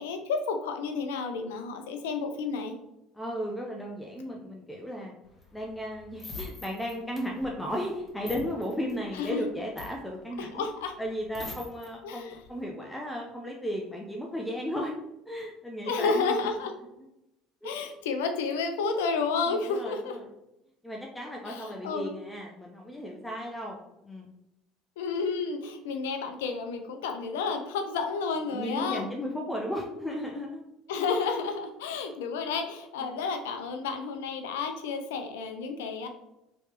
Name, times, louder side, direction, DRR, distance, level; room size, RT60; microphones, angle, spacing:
voice 1, 0.0-2.7 9.1-9.4 10.4-10.9 12.0-12.4 15.9-16.7 17.6-20.2 21.5-22.1 25.0-29.0 30.9-36.1, left 4 dB, 85° left, 6 dB, 0.5 m, -31 dB
voice 2, 3.1-5.1 5.5-10.7 11.0-14.9 15.3-16.4 17.6-18.0 19.5-20.3 20.8-23.8 24.0-24.3 28.5-30.6 33.0-33.2, equal, 5° left, -1 dB, 0.6 m, -35 dB
sound 1, 5.2-11.9 12.3-12.6, left 3 dB, 30° left, 1.2 m, -44 dB
3.2 x 3.1 x 2.9 m, 0.89 s
hypercardioid pair, 75°, 0 cm